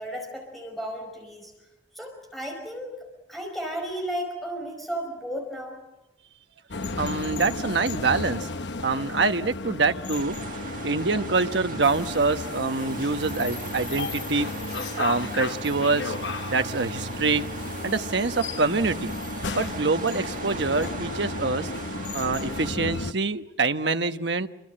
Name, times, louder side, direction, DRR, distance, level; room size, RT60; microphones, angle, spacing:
voice 1, 0.0-1.5 1.9-5.8, equal, ahead, 1 dB, 5.2 m, -34 dB
sound 1, 6.7-23.1, left 3 dB, 70° left, 0.9 m, -33 dB
voice 2, 7.0-8.5 8.8-10.4 10.8-14.5 15.0-16.1 16.5-17.4 17.8-19.1 19.5-21.7 22.1-24.5, right 3 dB, 75° right, 8 dB, 1.1 m, -25 dB
sound 2, 10.1-22.7, right 4 dB, 45° right, 1.6 m, -39 dB
sound 3, 12.9-18.0, left 2 dB, 55° left, 5.6 m, -46 dB
28.0 x 25.0 x 7.7 m, 0.99 s
head